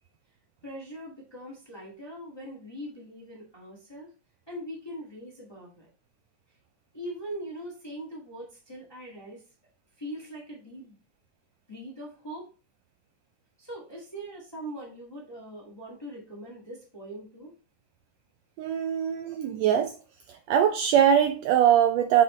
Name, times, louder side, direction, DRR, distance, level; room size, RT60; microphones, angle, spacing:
voice 1, 0.6-4.1 4.5-5.9 6.9-9.4 10.0-11.0 11.7-12.5 13.6-17.6 19.2-19.4, right 1 dB, 10° left, 1.2 m, -41 dB
voice 2, 18.6-20.0 20.3-22.2, right 9 dB, 80° right, 1.6 m, -22 dB
6.4 x 5.2 x 3.1 m
omnidirectional pair, 3.5 m